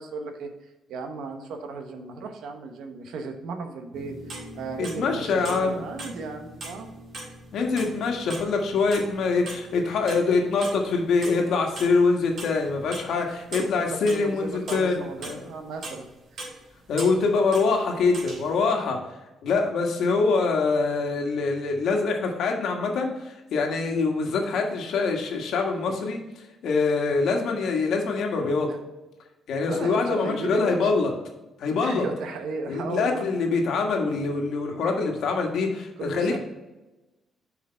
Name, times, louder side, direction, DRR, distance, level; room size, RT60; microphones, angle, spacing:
voice 1, 0.0-6.9 13.7-16.0 16.3-16.5 28.7-28.8 29.7-30.9 31.8-33.3 36.0-36.4, right 3 dB, 80° right, 5 dB, 1.0 m, -35 dB
sound 1, 3.9-17.7 18.0-18.6, right 2 dB, 60° right, 2.5 m, -41 dB
voice 2, 4.8-5.8 7.5-15.4 16.9-19.0 19.4-26.2 26.6-28.7 29.5-31.1 31.6-32.1 32.7-36.4, left 4 dB, 75° left, 2 dB, 1.5 m, -24 dB
7.0 x 4.9 x 4.4 m, 1.1 s
cardioid pair, 90°, 0 cm